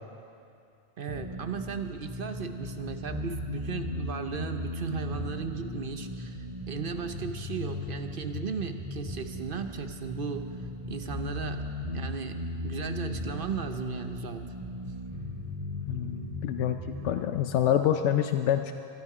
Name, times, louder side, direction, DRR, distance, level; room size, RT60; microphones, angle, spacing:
voice 1, 1.0-11.6 11.9-14.5, right 6 dB, 55° right, 7 dB, 1.0 m, -36 dB
sound 1, 1.1-17.1, left 1 dB, 25° right, 4.6 m, -37 dB
voice 2, 15.9-18.7, left 10 dB, 90° left, 7 dB, 0.9 m, -27 dB
23.5 x 12.5 x 4.9 m, 2.5 s
omnidirectional pair, 1.2 m